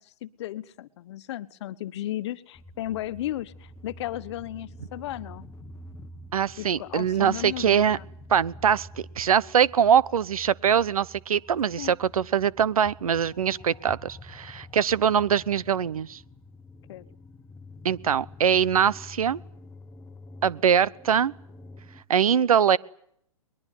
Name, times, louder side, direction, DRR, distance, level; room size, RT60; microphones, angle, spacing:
voice 1, 0.0-5.5 6.6-8.1 11.8-11.9 16.9-17.0, left 13 dB, 50° left, 15 dB, 1.3 m, -35 dB
sound 1, 2.5-22.0, left 1 dB, 15° left, 1.4 m, -47 dB
voice 2, 6.3-8.0 8.3-8.9 9.2-16.2 17.8-19.4 20.4-21.3 22.1-22.8, right 8 dB, 75° right, 23 dB, 1.0 m, -23 dB
22.5 x 21.5 x 9.5 m, 0.68 s
hypercardioid pair, 130°, 19 cm